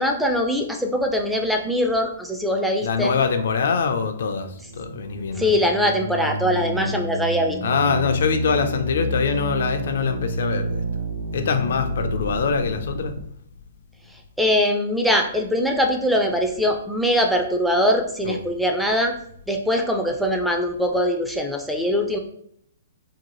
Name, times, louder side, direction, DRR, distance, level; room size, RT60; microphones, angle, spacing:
voice 1, 0.0-3.2 5.3-7.6 14.4-19.1 19.5-22.2, equal, ahead, 3 dB, 0.4 m, -22 dB
voice 2, 2.8-5.5 6.8-6.9 7.6-10.8 11.3-13.1 18.2-18.4, left 5 dB, 65° left, 7 dB, 0.4 m, -24 dB
sound 1, 4.4-13.2, right 1 dB, 85° right, 0.5 m, -29 dB
2.7 x 2.1 x 3.0 m, 0.68 s
hypercardioid pair, 130°, 0 cm